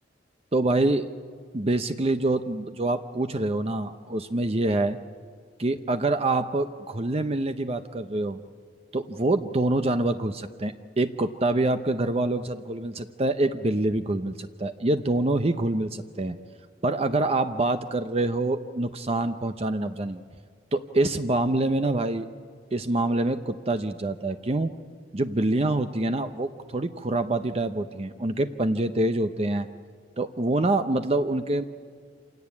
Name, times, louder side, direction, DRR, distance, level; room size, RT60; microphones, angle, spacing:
voice 1, 0.5-1.1 1.5-5.0 5.6-8.4 8.9-16.4 16.8-20.2 20.7-22.3 22.7-24.7 25.1-29.7 30.2-31.6, right 2 dB, 35° right, 9 dB, 0.7 m, -26 dB
27.0 x 17.5 x 9.7 m, 2.1 s
head